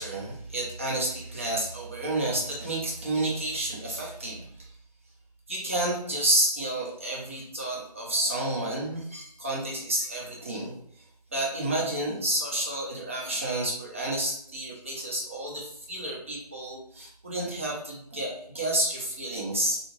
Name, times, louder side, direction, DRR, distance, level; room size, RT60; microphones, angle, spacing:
voice 1, 0.0-4.5 5.5-10.7 11.3-19.8, right 1 dB, 20° right, -3 dB, 0.6 m, -30 dB
3.6 x 2.4 x 3.2 m, 0.70 s
figure-of-eight pair, 155°, 21 cm